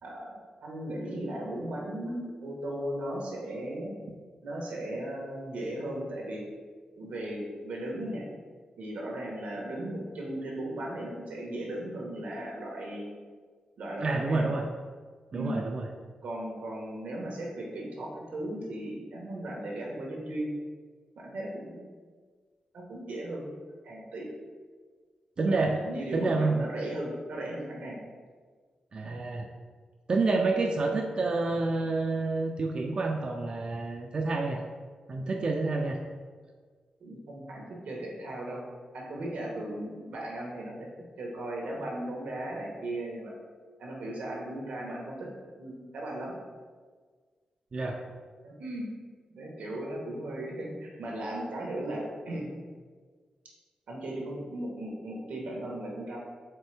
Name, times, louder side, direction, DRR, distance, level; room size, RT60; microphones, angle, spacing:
voice 1, 0.0-3.9 4.4-6.4 7.0-8.2 8.8-13.1 13.8-14.5 15.3-15.6 16.2-20.5 21.2-21.8 22.7-23.5 23.8-24.3 25.4-28.0 35.5-35.7 37.0-38.6 38.9-40.9 41.2-43.3 43.8-45.3 45.6-46.3 48.4-48.9 49.3-52.5 53.9-56.2, right 1 dB, 85° right, -2 dB, 1.0 m, -37 dB
voice 2, 14.0-14.7 15.3-15.9 25.4-25.8 26.1-26.6 28.9-29.5 30.1-34.6 35.1-36.0 47.7-48.0, right 3 dB, 40° right, 2 dB, 0.3 m, -28 dB
4.4 x 3.4 x 3.3 m, 1.5 s
wide cardioid pair, 130°, 2 cm